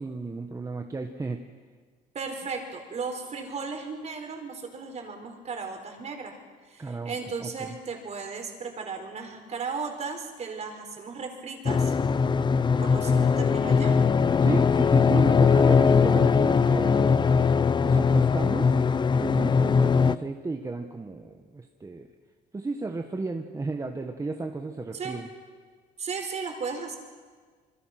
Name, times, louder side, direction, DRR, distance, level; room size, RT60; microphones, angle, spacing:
voice 1, 0.0-1.4 6.8-7.1 7.4-7.7 12.8-13.2 14.4-17.3 17.8-18.7 19.2-22.1 22.5-25.3, right 3 dB, 20° right, 4 dB, 1.5 m, -34 dB
voice 2, 2.1-6.4 6.7-11.9 12.8-14.0 24.9-25.2 26.0-27.0, right 5 dB, 40° right, 4 dB, 4.7 m, -35 dB
sound 1, 11.7-20.2, left 5 dB, 25° left, 0.6 m, -21 dB
26.5 x 23.5 x 6.0 m, 1.6 s
cardioid pair, 110°, 17 cm